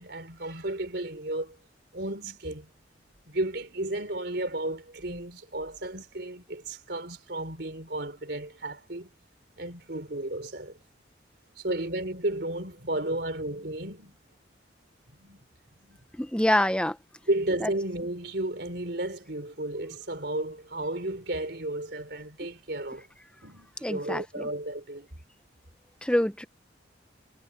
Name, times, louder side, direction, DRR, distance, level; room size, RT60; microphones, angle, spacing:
voice 1, 0.0-1.6 1.9-2.7 3.3-9.1 9.6-10.8 11.6-14.2 15.1-15.4 15.8-16.0 17.3-23.1 23.4-25.1, right 1 dB, 60° right, 4.1 m, -33 dB
voice 2, 16.1-17.0 17.6-17.7 23.8-24.4 26.0-26.4, left 1 dB, 5° left, 0.9 m, -26 dB
head